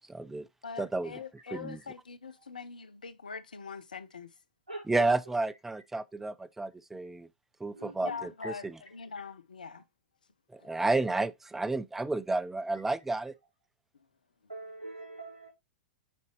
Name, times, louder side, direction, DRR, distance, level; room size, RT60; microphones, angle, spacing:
voice 1, 0.1-0.5 0.8-1.1 1.5-1.8 4.9-7.3 7.6-8.7 10.5-13.3, right 2 dB, 5° right, 0.4 m, -31 dB
voice 2, 0.6-4.4 8.0-9.8 10.6-10.7, left 5 dB, 75° left, 0.7 m, -43 dB
voice 3, 4.7-5.1 7.7-8.5 14.5-15.5, right 2 dB, 85° right, 3.2 m, -43 dB
8.6 x 4.1 x 3.1 m
figure-of-eight pair, 100°, 5 cm